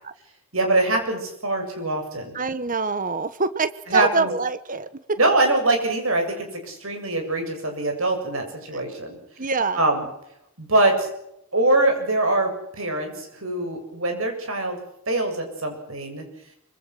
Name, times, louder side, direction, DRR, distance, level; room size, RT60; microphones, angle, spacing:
voice 1, 0.5-2.4 3.9-4.3 5.2-9.2 9.8-10.0 10.6-11.1 11.5-14.8 15.1-16.2, right 2 dB, 70° right, 4 dB, 7.5 m, -23 dB
voice 2, 2.3-5.2 8.7-8.8 9.4-9.8, right 4 dB, 40° right, 14 dB, 1.2 m, -25 dB
25.5 x 25.0 x 6.3 m, 0.79 s
head